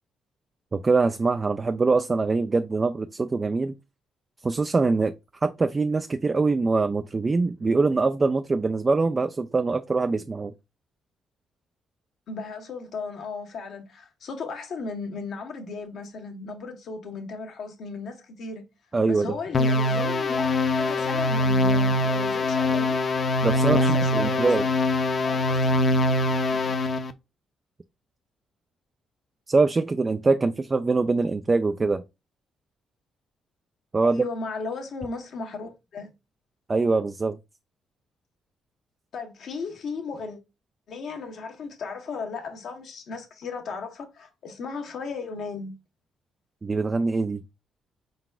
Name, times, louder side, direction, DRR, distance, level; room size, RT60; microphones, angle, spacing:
voice 1, 0.7-3.7 4.4-5.1 5.4-10.5 18.9-19.3 23.4-24.7 29.5-32.0 33.9-34.3 36.7-37.4 46.6-47.4, right 3 dB, 25° right, 0.3 m, -23 dB
voice 2, 12.3-18.6 19.1-23.0 23.5-24.6 25.2-26.0 34.0-36.1 39.1-40.4 40.9-45.7, left 4 dB, 65° left, 1.2 m, -36 dB
sound 1, 19.5-27.1, left 2 dB, 45° left, 0.5 m, -23 dB
4.6 x 3.9 x 2.3 m
cardioid pair, 90°, 0 cm